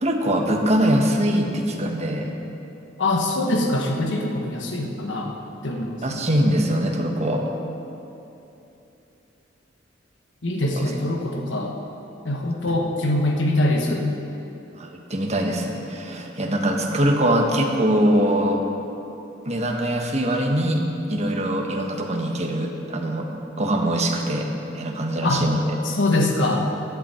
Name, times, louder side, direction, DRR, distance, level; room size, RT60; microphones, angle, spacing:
voice 1, 0.0-2.3 6.0-7.4 10.8-10.9 12.7-12.8 14.8-18.6 19.4-23.3 23.6-25.6, right 1 dB, 35° right, 2 dB, 1.3 m, -23 dB
voice 2, 3.0-5.3 5.6-6.2 10.4-11.7 12.2-14.1 25.2-25.4 25.8-26.6, left 1 dB, 75° left, 1 dB, 1.3 m, -23 dB
15.5 x 11.5 x 4.4 m, 2.9 s
head